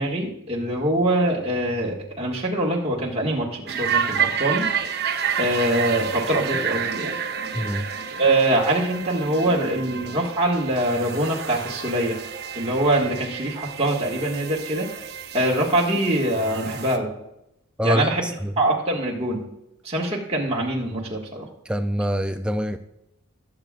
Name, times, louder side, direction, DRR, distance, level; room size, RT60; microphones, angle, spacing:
voice 1, 0.0-4.7 5.4-7.1 8.2-12.2 12.5-17.1 17.8-18.3 18.6-19.5 19.8-21.5, right 1 dB, 30° right, -3 dB, 1.7 m, -23 dB
sound 1, 3.7-17.0, right 7 dB, 50° right, 0.7 m, -30 dB
voice 2, 7.5-7.9 17.8-18.5 21.7-22.8, equal, 5° right, 8 dB, 0.3 m, -25 dB
19.5 x 7.3 x 2.4 m, 0.85 s
head